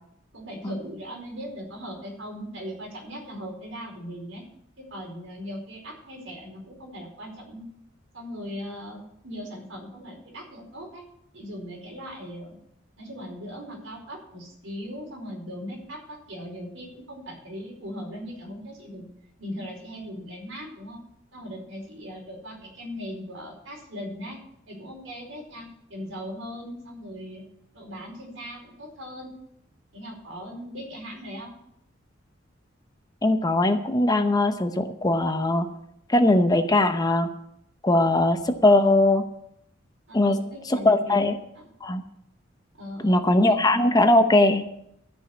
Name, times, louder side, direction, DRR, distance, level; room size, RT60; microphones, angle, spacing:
voice 1, 0.3-4.4 4.8-7.7 8.1-11.0 11.3-12.5 13.0-19.0 19.4-21.0 21.3-24.4 24.7-27.4 27.7-29.3 29.9-31.5 40.1-41.2 41.5-41.6 42.8-43.6, equal, 80° right, -1 dB, 4.7 m, -39 dB
voice 2, 33.2-35.7 36.1-37.3 37.8-39.2 40.1-40.4 40.7-41.3 41.8-42.0 43.0-44.6, left 2 dB, 20° left, 8 dB, 0.8 m, -20 dB
13.5 x 5.5 x 8.3 m, 0.76 s
head